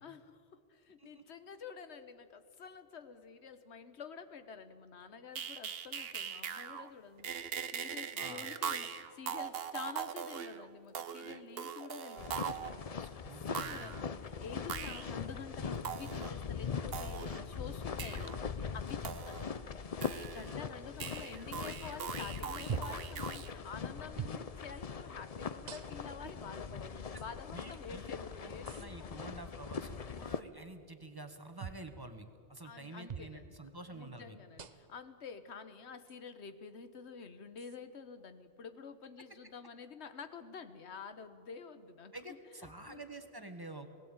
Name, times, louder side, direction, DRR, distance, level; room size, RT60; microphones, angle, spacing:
voice 1, 0.0-7.4 7.7-13.2 13.5-29.2 32.6-33.6 33.9-43.0, left 6 dB, 90° left, 11 dB, 1.3 m, -49 dB
sound 1, 5.4-6.9 7.2-12.8 13.5-14.1 14.7-15.1 15.8-16.3 16.9-17.4 18.0-18.4 19.0-19.6 20.0-20.7 21.0-23.5, right 8 dB, 65° right, 1.0 m, -41 dB
voice 2, 8.2-8.5 13.0-13.9 27.5-34.4 42.1-43.9, right 2 dB, 20° right, 7 dB, 1.2 m, -49 dB
sound 2, 12.2-30.4, left 6 dB, 40° left, 0.7 m, -41 dB
modular synthesis drums, 22.7-23.1 24.2-24.4 25.7-26.2 27.2-27.3 28.7-28.9 31.6-31.9 33.1-33.3 34.6-35.0 36.1-36.2 37.6-37.8, right 7 dB, 45° right, 0.8 m, -42 dB
18.5 x 17.5 x 8.9 m, 2.4 s
omnidirectional pair, 1.1 m